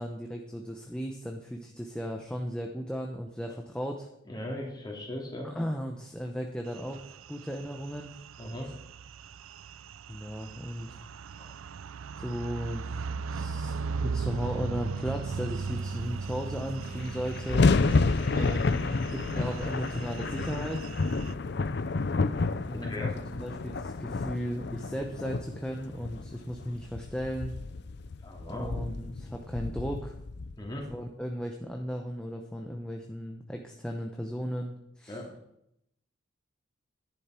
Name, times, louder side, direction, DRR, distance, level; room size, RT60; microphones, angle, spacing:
voice 1, 0.0-4.1 5.4-8.1 10.1-11.0 12.2-12.9 13.3-17.7 18.3-20.9 22.6-27.5 28.5-30.1 30.9-35.2, equal, 5° left, 2 dB, 0.8 m, -36 dB
voice 2, 4.3-5.5 8.4-8.7 11.4-11.5 22.8-23.1 28.2-28.7 30.6-30.9 35.1-35.3, left 1 dB, 20° left, -1 dB, 2.9 m, -38 dB
sound 1, 6.7-21.3, right 5 dB, 90° right, 0.4 m, -38 dB
sound 2, 16.4-16.5 16.6-31.0, left 3 dB, 55° left, 0.5 m, -30 dB
11.0 x 10.5 x 4.5 m, 0.77 s
head